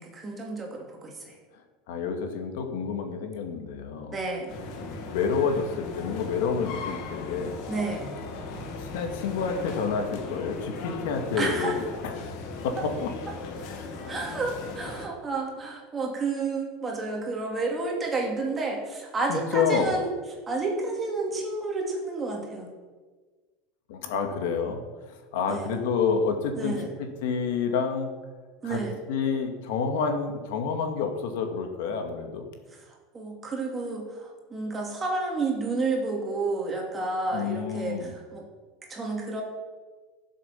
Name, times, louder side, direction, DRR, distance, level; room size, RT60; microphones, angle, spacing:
voice 1, 0.0-1.3 4.1-4.5 7.7-8.1 11.4-11.8 14.1-20.1 20.5-22.7 25.5-25.8 26.6-26.9 28.6-29.0 33.1-38.5 38.9-39.4, right 3 dB, 15° right, 0 dB, 2.7 m, -30 dB
voice 2, 1.9-4.2 5.1-7.6 8.8-12.4 12.6-13.1 13.7-13.9 19.3-20.0 23.9-28.1 28.6-28.8 29.1-32.5 37.3-38.1, left 5 dB, 80° left, 5 dB, 2.2 m, -29 dB
sound 1, 4.5-15.1, left 3 dB, 55° left, 2.2 m, -37 dB
15.5 x 7.6 x 7.4 m, 1.4 s
supercardioid pair, 160°, 0 cm